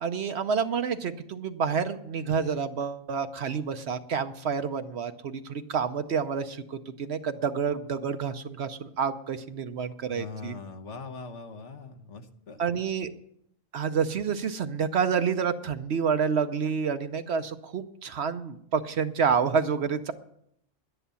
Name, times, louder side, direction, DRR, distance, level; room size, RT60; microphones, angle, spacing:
voice 1, 0.0-10.6 12.6-13.1 13.7-20.1, right 6 dB, 60° right, 9 dB, 0.9 m, -28 dB
voice 2, 10.1-12.6, left 4 dB, 65° left, 6 dB, 1.4 m, -41 dB
11.5 x 10.0 x 6.9 m, 0.72 s
omnidirectional pair, 1.3 m